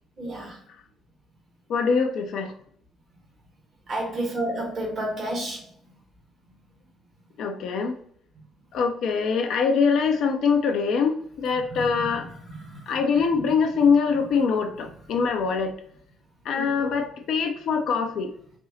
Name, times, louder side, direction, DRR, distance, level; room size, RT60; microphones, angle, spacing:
voice 1, 0.2-0.6 3.9-5.6 11.7-13.0 13.3-13.5 14.8-15.2 16.5-16.8, right 1 dB, 40° right, -2 dB, 1.3 m, -32 dB
voice 2, 1.7-2.5 7.4-8.0 8.7-12.3 12.9-15.7 16.5-18.3, left 5 dB, 55° left, 4 dB, 0.5 m, -23 dB
4.2 x 2.6 x 2.8 m, 0.62 s
figure-of-eight pair, 45°, 0 cm